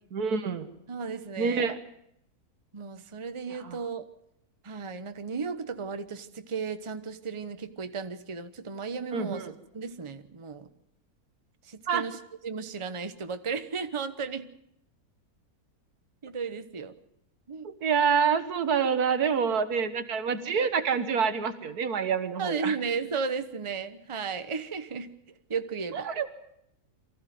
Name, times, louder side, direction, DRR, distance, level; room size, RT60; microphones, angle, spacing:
voice 1, 0.1-0.7 1.4-1.8 3.6-3.8 9.1-9.5 11.9-12.0 17.6-22.8 25.9-26.3, right 6 dB, 90° right, 10 dB, 1.9 m, -27 dB
voice 2, 0.9-1.7 2.7-4.0 4.6-9.5 9.7-10.7 11.6-14.5 16.2-16.9 17.5-17.7 22.4-25.1 25.5-26.1, right 5 dB, 25° right, 9 dB, 0.9 m, -34 dB
23.5 x 15.0 x 9.3 m, 0.78 s
omnidirectional pair, 1.6 m